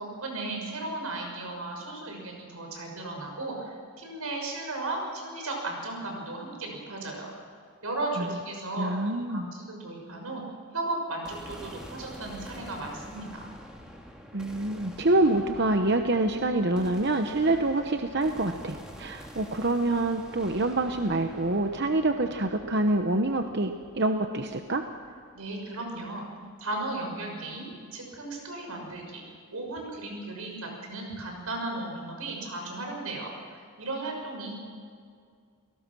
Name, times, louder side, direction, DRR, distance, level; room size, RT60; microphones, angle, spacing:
voice 1, 0.0-7.3 7.8-10.4 10.7-13.5 25.3-26.2 26.6-29.2 29.5-34.5, right 2 dB, 90° right, 1 dB, 6.3 m, -35 dB
voice 2, 8.8-9.5 14.3-24.8, right 2 dB, 50° right, 6 dB, 1.0 m, -26 dB
sound 1, 11.2-25.5, equal, 5° right, 2.3 m, -47 dB
29.0 x 18.5 x 6.2 m, 2.2 s
head